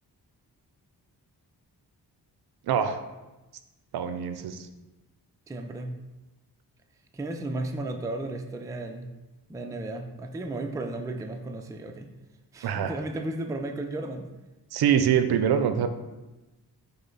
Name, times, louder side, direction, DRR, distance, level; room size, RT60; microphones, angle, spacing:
voice 1, 2.7-3.0 3.9-4.7 12.6-13.0 14.7-15.9, right 8 dB, 70° right, 9 dB, 0.5 m, -24 dB
voice 2, 5.5-6.0 7.1-9.1 9.5-12.1 12.5-14.3, right 2 dB, 10° right, 4 dB, 0.3 m, -34 dB
5.3 x 2.1 x 3.9 m, 1.1 s
cardioid pair, 65°, 40 cm